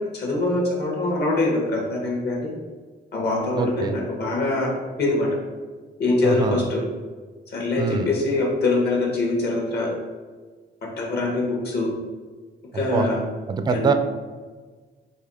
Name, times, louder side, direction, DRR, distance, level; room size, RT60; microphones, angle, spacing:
voice 1, 0.1-2.5 3.1-4.7 5.0-5.3 6.0-6.8 7.5-9.9 11.0-11.9 12.7-13.2 13.7-13.9, left 2 dB, 55° left, -2 dB, 1.5 m, -23 dB
voice 2, 3.6-4.0 6.2-6.6 7.8-8.1 12.7-13.1 13.5-13.9, right 5 dB, 20° right, 7 dB, 0.3 m, -24 dB
4.1 x 2.8 x 4.2 m, 1.4 s
cardioid pair, 90°, 20 cm